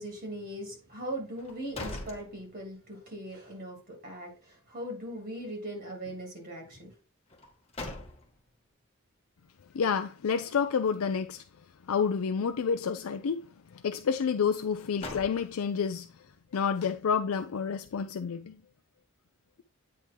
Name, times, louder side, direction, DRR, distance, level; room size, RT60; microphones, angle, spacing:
voice 1, 0.0-6.9, right 1 dB, 45° right, 2.7 m, -40 dB
sound 1, 1.3-3.0 3.4-3.5 7.3-8.6 14.6-15.9, left 2 dB, 30° left, 1.4 m, -42 dB
voice 2, 9.7-11.4 11.9-13.4 13.7-16.1 16.5-18.6, left 6 dB, 80° left, 0.4 m, -29 dB
8.4 x 3.6 x 4.5 m
head